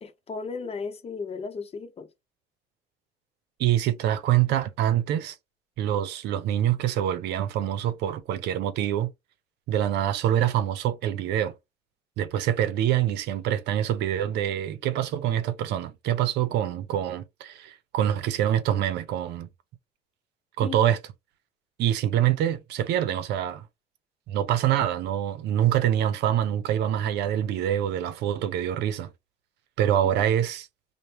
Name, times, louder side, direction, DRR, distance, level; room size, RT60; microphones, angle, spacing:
voice 1, 0.0-2.1 20.6-20.8, left 5 dB, 35° left, 0.8 m, -35 dB
voice 2, 3.6-5.4 5.8-9.1 9.7-11.5 12.2-19.5 20.6-21.0 21.8-23.7 24.3-29.1 29.8-30.7, right 11 dB, 80° right, 0.7 m, -25 dB
5.0 x 2.2 x 2.9 m
cardioid pair, 110°, 17 cm